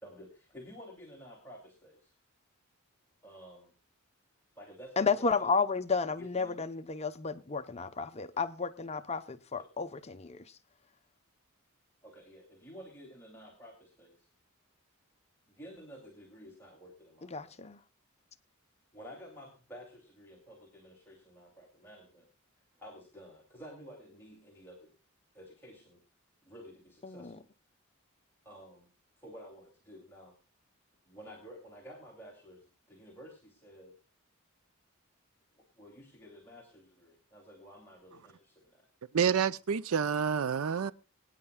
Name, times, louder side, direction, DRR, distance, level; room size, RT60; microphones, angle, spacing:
voice 1, 0.0-2.1 3.2-3.7 4.5-5.5 6.2-6.6 9.6-9.7 12.0-14.3 15.5-17.6 18.9-22.3 22.8-24.9 25.3-26.0 26.4-27.5 28.4-28.9 29.2-30.3 31.1-33.9 35.5-38.9, equal, 10° left, 2.7 m, -52 dB
voice 2, 5.0-10.4 17.3-17.8 27.0-27.3, left 5 dB, 30° left, 0.7 m, -32 dB
voice 3, 39.1-40.9, right 7 dB, 75° right, 0.5 m, -28 dB
23.5 x 9.8 x 2.2 m
head